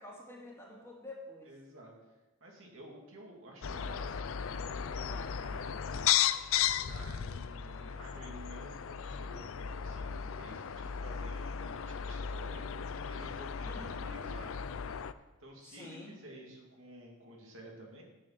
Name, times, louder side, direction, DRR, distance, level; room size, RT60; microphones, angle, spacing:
voice 1, 0.0-1.5 5.1-5.3 13.6-14.1 15.6-16.2, left 1 dB, 10° left, -4 dB, 2.5 m, -48 dB
voice 2, 1.4-2.1 2.4-4.1 4.5-5.9 6.8-12.7 13.1-14.5 15.4-18.0, equal, 60° right, -1 dB, 2.5 m, -51 dB
sound 1, 3.6-15.1, left 9 dB, 65° left, 0.5 m, -35 dB
10.0 x 7.2 x 7.5 m, 1.1 s
head